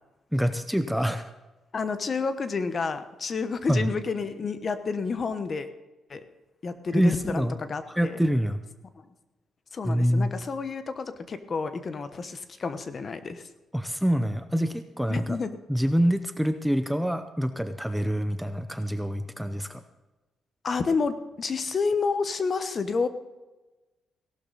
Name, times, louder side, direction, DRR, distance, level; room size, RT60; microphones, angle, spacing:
voice 1, 0.3-1.3 3.7-3.9 6.9-7.5 7.9-8.6 9.8-10.3 13.7-15.2 15.7-19.8, equal, ahead, 8 dB, 0.7 m, -26 dB
voice 2, 1.7-5.7 6.1-6.2 6.6-8.2 9.0-9.1 9.7-13.5 15.1-15.6 20.6-23.1, left 4 dB, 35° left, 11 dB, 1.1 m, -30 dB
17.0 x 12.0 x 4.1 m, 1.1 s
cardioid pair, 130°, 0 cm